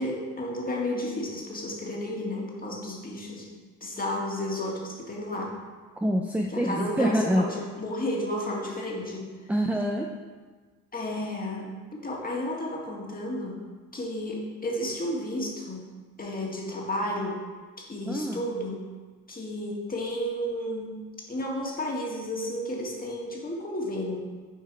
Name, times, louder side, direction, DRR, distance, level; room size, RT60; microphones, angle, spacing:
voice 1, 0.0-5.5 6.5-9.3 10.9-11.7 12.0-13.6 13.9-15.8 16.2-17.4 17.8-18.8 19.3-20.9 21.3-24.2, left 1 dB, 25° left, -2 dB, 1.9 m, -32 dB
voice 2, 6.0-7.5 9.5-10.1 18.1-18.4, equal, 5° right, 1 dB, 0.6 m, -26 dB
7.7 x 4.6 x 4.7 m, 1.4 s
supercardioid pair, 75°, 35 cm